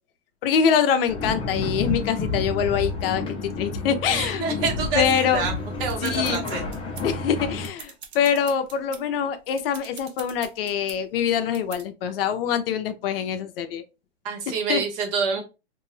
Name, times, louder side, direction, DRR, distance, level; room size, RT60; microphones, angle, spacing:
voice 1, 0.4-4.4 4.9-5.5 6.0-6.5 7.0-13.8 14.5-14.8, left 7 dB, 60° left, 0.6 m, -24 dB
sound 1, 1.1-7.7, left 3 dB, 15° left, 0.6 m, -30 dB
voice 2, 4.1-5.5 5.8-6.6 14.2-15.4, right 5 dB, 55° right, 1.2 m, -27 dB
sound 2, 5.5-7.3 7.6-9.0 9.5-11.0 11.5-11.8, right 7 dB, 70° right, 0.9 m, -43 dB
2.6 x 2.6 x 3.1 m
hypercardioid pair, 125°, 33 cm